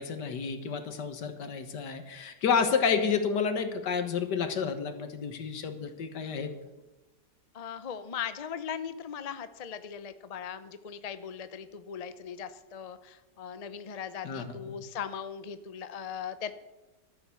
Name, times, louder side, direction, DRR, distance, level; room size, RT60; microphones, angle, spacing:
voice 1, 0.0-6.5 14.2-14.8, left 6 dB, 70° left, 8 dB, 2.0 m, -30 dB
voice 2, 7.5-16.5, left 7 dB, 85° left, 12 dB, 0.3 m, -39 dB
13.0 x 9.3 x 7.0 m, 1.1 s
omnidirectional pair, 1.9 m